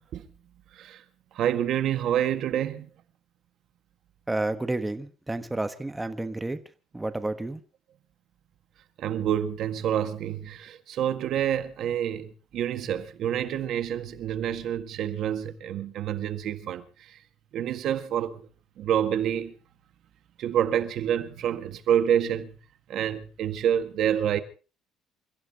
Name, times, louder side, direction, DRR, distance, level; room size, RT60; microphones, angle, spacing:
voice 1, 1.3-2.9 9.0-16.8 17.5-18.4 18.8-19.5 20.4-22.6 22.9-24.4, right 10 dB, 50° right, 1.8 m, -27 dB
voice 2, 4.3-6.6 6.9-7.6, right 2 dB, 10° right, 1.3 m, -30 dB
29.0 x 15.5 x 3.0 m
cardioid pair, 170°, 0 cm